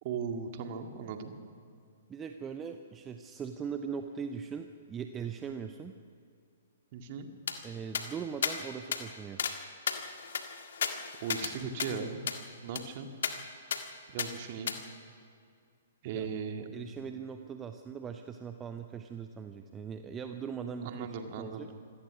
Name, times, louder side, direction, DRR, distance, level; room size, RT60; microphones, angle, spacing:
voice 1, 0.0-1.3 6.9-7.3 11.2-12.2 12.6-13.1 14.1-14.7 16.0-16.7 20.8-21.8, right 6 dB, 40° right, 5 dB, 2.1 m, -38 dB
voice 2, 2.1-5.9 7.6-9.4 16.1-16.3 16.7-21.1 21.4-21.7, right 6 dB, 15° right, 7 dB, 0.8 m, -40 dB
sound 1, 7.5-7.6 7.9-8.1 8.4-8.6 8.9-9.0 9.4-9.6 9.9-11.5 11.8-11.9 12.3-12.4 12.8-12.9 13.2-13.3 13.7-13.8 14.2-14.3 14.7-14.8, left 7 dB, 55° left, 1.7 m, -33 dB
26.0 x 17.0 x 6.2 m, 2.3 s
figure-of-eight pair, 115°, 0 cm